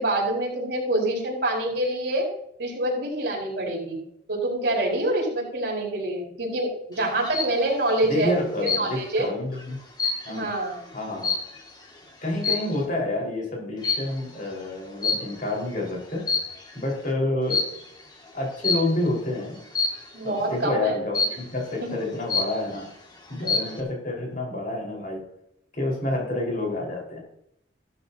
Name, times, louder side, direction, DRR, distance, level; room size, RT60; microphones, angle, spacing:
voice 1, 0.0-2.3 2.6-4.0 4.3-8.3 8.6-9.3 10.3-10.8 20.1-21.0 21.8-21.9, right 1 dB, 60° right, -2 dB, 4.7 m, -26 dB
sound 1, 7.0-7.6 8.6-9.2 9.6-11.8 12.4-12.8 13.8-14.2 15.0-15.6 16.1-16.8 17.5-17.9 18.6-19.0 19.7-20.2 21.1-21.6 22.0-22.1 22.3-22.9 23.3-23.8, left 4 dB, 25° left, 2.2 m, -27 dB
voice 2, 8.0-9.8 10.2-10.5 10.9-11.3 12.2-16.3 16.7-17.6 18.3-19.6 20.2-22.9 23.3-25.2 25.7-27.2, left 2 dB, 45° left, -2 dB, 4.9 m, -28 dB
15.0 x 13.5 x 2.9 m, 0.77 s
head